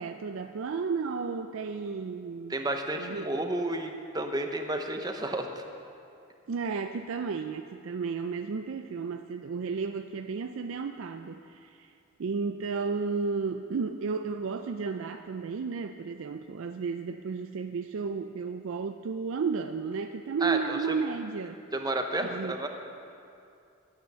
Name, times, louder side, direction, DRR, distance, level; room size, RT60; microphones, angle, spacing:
voice 1, 0.0-2.6 3.0-3.3 6.5-11.9 12.2-21.6 22.2-22.6, right 5 dB, 65° right, 7 dB, 0.4 m, -33 dB
voice 2, 2.5-5.6 20.4-20.8 21.7-22.7, right 1 dB, 20° right, 5 dB, 0.7 m, -31 dB
11.5 x 9.5 x 6.8 m, 2.5 s
head